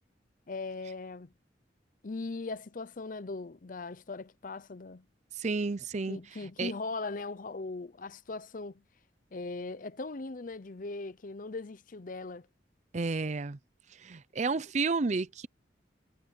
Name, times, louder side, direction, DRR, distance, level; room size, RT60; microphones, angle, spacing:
voice 1, 0.5-1.3 2.0-5.0 6.1-8.8 9.3-12.5, left 3 dB, 50° left, 0.7 m, -39 dB
voice 2, 5.4-6.2 6.6-6.7 12.9-13.6 14.0-15.5, right 4 dB, 40° right, 0.5 m, -31 dB
head